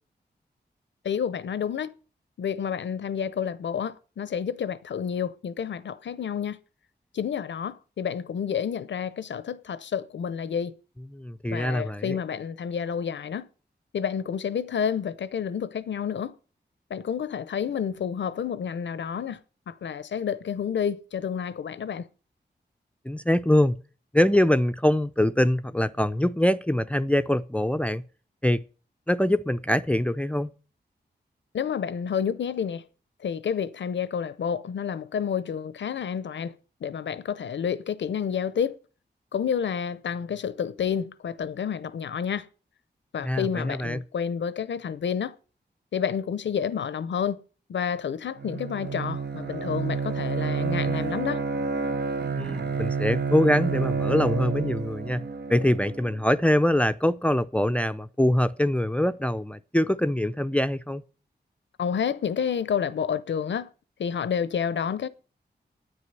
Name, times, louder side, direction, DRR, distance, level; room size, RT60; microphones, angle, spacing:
voice 1, 1.0-1.9 2.4-6.6 7.1-10.7 11.5-13.5 13.9-16.4 16.9-19.4 19.7-22.1 31.5-32.8 33.2-36.5 36.8-38.8 39.3-42.5 43.1-45.3 45.9-47.4 47.7-51.4 61.8-63.7 64.0-65.1, left 7 dB, 85° left, 0.7 m, -29 dB
voice 2, 11.1-12.2 23.1-23.8 24.1-28.0 28.4-28.6 29.1-30.5 43.2-44.0 52.4-55.2 55.5-61.0, left 1 dB, 5° left, 0.5 m, -24 dB
Bowed string instrument, 48.4-56.2, right 5 dB, 65° right, 0.8 m, -29 dB
9.8 x 9.1 x 6.8 m
cardioid pair, 55°, 18 cm